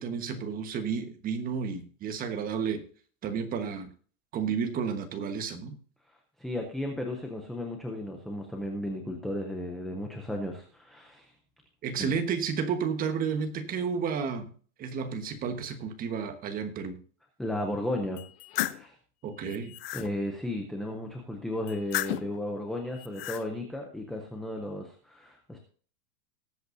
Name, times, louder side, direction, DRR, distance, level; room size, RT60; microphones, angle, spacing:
voice 1, 0.0-2.8 3.2-3.9 4.3-5.8 11.8-14.5 14.8-17.0 19.2-19.7, right 6 dB, 20° right, 1.2 m, -31 dB
voice 2, 6.4-11.3 12.0-12.1 17.4-18.2 18.7-19.0 19.9-25.6, left 1 dB, ahead, 0.4 m, -34 dB
sound 1, 18.2-18.9 19.4-20.1 21.7-22.4 22.9-23.4, left 16 dB, 45° left, 0.7 m, -34 dB
19.0 x 8.0 x 2.6 m
supercardioid pair, 155°, 43 cm